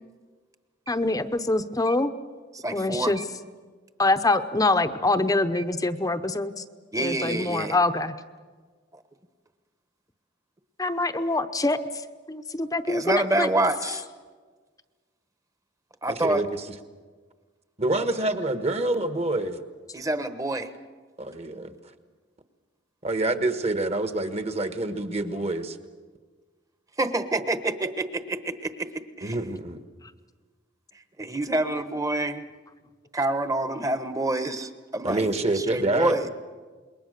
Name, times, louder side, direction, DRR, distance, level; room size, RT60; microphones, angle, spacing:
voice 1, 0.9-2.1 2.7-3.2 4.0-6.6 7.0-8.1 10.8-11.8 12.3-13.5, left 2 dB, 20° left, 9 dB, 0.8 m, -24 dB
voice 2, 2.5-3.2 4.3-4.4 5.6-5.7 6.9-7.8 8.9-9.0 12.9-14.0 16.0-16.4 19.9-20.7 27.0-29.4 31.2-32.4 33.1-36.3, right 2 dB, 20° right, 10 dB, 1.2 m, -27 dB
voice 3, 16.1-16.5 17.8-19.6 21.2-21.7 23.0-25.8 29.2-29.8 35.0-36.3, right 2 dB, 35° right, 9 dB, 1.4 m, -27 dB
27.5 x 21.5 x 6.6 m, 1.5 s
head